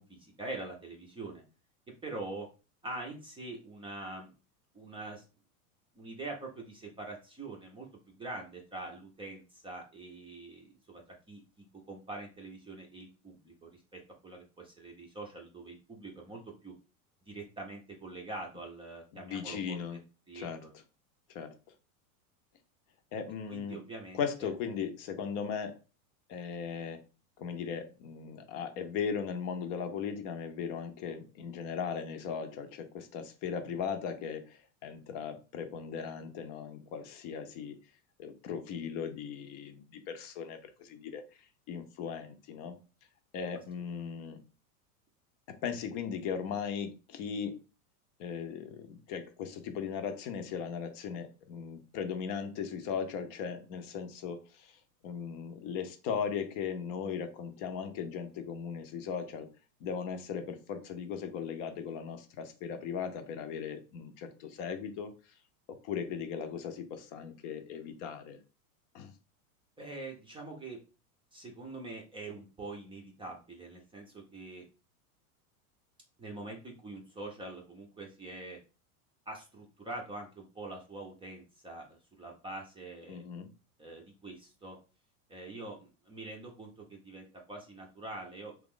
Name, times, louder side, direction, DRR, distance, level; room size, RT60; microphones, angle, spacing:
voice 1, 0.0-1.4 2.0-2.5 2.8-4.3 4.7-5.2 5.9-11.0 11.3-16.7 17.3-20.0 20.3-20.7 23.5-24.5 69.8-70.8 71.3-74.6 76.2-78.6 79.3-83.2 83.8-84.8 85.3-88.5, right 2 dB, 10° right, 0 dB, 0.5 m, -44 dB
voice 2, 19.1-20.0 20.3-20.8 21.3-21.5 23.1-23.8 24.1-25.7 26.3-27.0 27.4-37.8 38.2-41.2 41.7-42.8 43.3-44.4 45.5-47.6 48.2-59.5 59.8-65.3 65.7-68.4 68.9-69.1 83.1-83.5, left 7 dB, 45° left, 7 dB, 0.6 m, -38 dB
3.0 x 2.4 x 3.6 m, 0.32 s
supercardioid pair, 120°, 44 cm